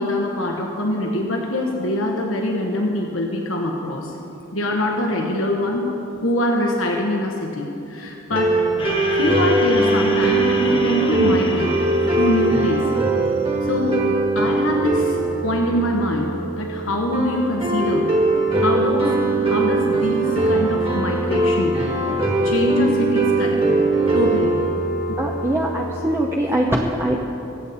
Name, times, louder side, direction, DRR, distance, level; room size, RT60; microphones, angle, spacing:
voice 1, 0.0-4.2 4.5-5.9 6.2-8.6 9.1-11.8 12.1-12.9 13.6-14.0 14.3-18.2 18.6-21.8 22.4-23.8 24.1-24.7 25.1-25.2, left 1 dB, 85° left, 0 dB, 1.3 m, -24 dB
sound 1, 8.3-26.3, right 2 dB, 30° right, 2.0 m, -21 dB
sound 2, 8.8-13.2, left 3 dB, 30° left, 1.3 m, -31 dB
voice 2, 25.2-27.3, right 1 dB, 10° right, -1 dB, 0.8 m, -22 dB
24.0 x 8.4 x 4.3 m, 2.9 s
head